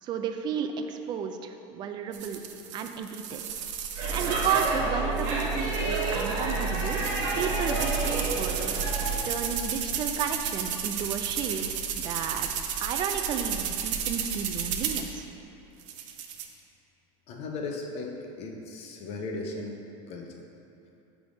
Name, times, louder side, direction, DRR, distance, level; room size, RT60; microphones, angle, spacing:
voice 1, 0.0-2.4 2.7-3.4 4.1-7.0 7.4-8.8 9.3-12.5 12.8-15.3, right 7 dB, 30° right, 6 dB, 0.3 m, -33 dB
sound 1, 2.1-4.8 5.2-15.1 15.8-16.5, right 8 dB, 80° right, 0.5 m, -33 dB
Speech / Shout / Subway metro underground, 4.0-9.2, right 3 dB, 65° right, 1.4 m, -29 dB
voice 2, 17.3-20.5, left 3 dB, 40° left, 1 dB, 0.7 m, -37 dB
5.5 x 3.5 x 5.1 m, 2.7 s
supercardioid pair, 145°, 16 cm